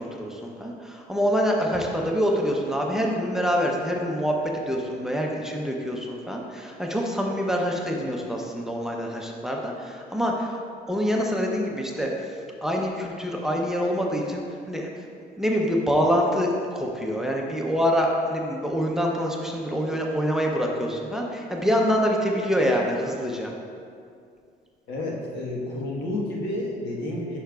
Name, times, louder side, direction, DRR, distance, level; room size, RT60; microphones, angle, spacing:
voice 1, 0.0-10.6 10.9-15.1 15.4-23.5, equal, 5° right, -1 dB, 0.6 m, -26 dB
voice 2, 24.9-27.4, left 1 dB, 80° left, -3 dB, 1.3 m, -30 dB
8.7 x 5.6 x 2.4 m, 2.3 s
cardioid pair, 110°, 17 cm